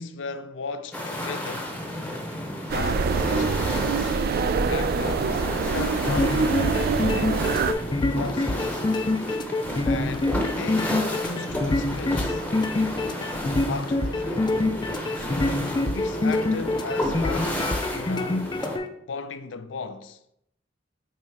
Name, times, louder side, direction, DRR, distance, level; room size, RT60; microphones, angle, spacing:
voice 1, 0.0-1.8 2.7-4.2 4.6-6.5 8.1-8.9 9.8-12.5 13.7-14.8 15.2-18.5 19.1-20.3, left 4 dB, 85° left, 0.5 m, -36 dB
sound 1, 0.9-18.8, left 1 dB, 10° left, 0.8 m, -32 dB
sound 2, 2.7-7.7, right 5 dB, 55° right, 0.3 m, -25 dB
sound 3, 5.9-18.9, left 2 dB, 25° left, 0.4 m, -26 dB
8.5 x 3.5 x 3.5 m
head